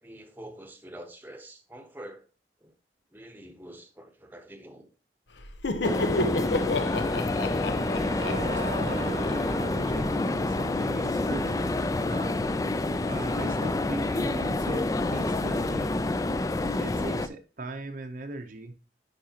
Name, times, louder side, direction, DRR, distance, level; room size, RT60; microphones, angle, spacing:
voice 1, 0.0-2.3 2.6-2.7 3.1-4.9, right 1 dB, 10° right, 0.9 m, -46 dB
Laughter, 5.4-10.1, left 2 dB, 85° left, 0.8 m, -31 dB
sound 1, 5.8-17.3, left 2 dB, 20° left, 0.3 m, -28 dB
Wind instrument woodwind instrument, 6.2-10.9, right 3 dB, 80° right, 0.8 m, -42 dB
voice 2, 8.2-12.4 13.0-16.1 16.8-18.7, right 2 dB, 50° right, 0.7 m, -39 dB
10.5 x 4.8 x 2.8 m
head